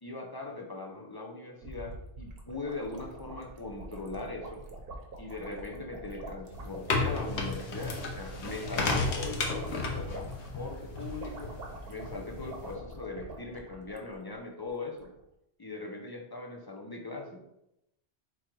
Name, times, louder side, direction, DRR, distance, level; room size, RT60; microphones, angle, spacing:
voice 1, 0.0-4.6 5.2-11.5 11.9-15.1 15.6-17.4, left 3 dB, 35° left, 1 dB, 0.3 m, -40 dB
sound 1, 1.6-14.4 14.7-14.8 15.0-15.2, right 2 dB, 60° right, 0.9 m, -45 dB
sound 2, 6.5-12.7, left 3 dB, 75° left, 1.1 m, -34 dB
3.7 x 3.1 x 4.4 m, 0.84 s
omnidirectional pair, 1.2 m